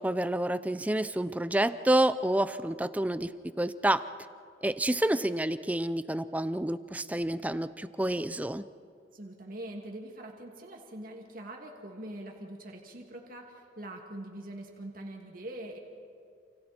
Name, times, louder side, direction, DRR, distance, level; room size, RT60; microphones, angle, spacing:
voice 1, 0.0-3.3 3.6-4.0 4.6-8.6, right 1 dB, 10° right, 13 dB, 0.5 m, -28 dB
voice 2, 9.1-15.8, right 1 dB, 50° right, 1 dB, 2.6 m, -43 dB
29.0 x 29.0 x 4.4 m, 2.3 s
head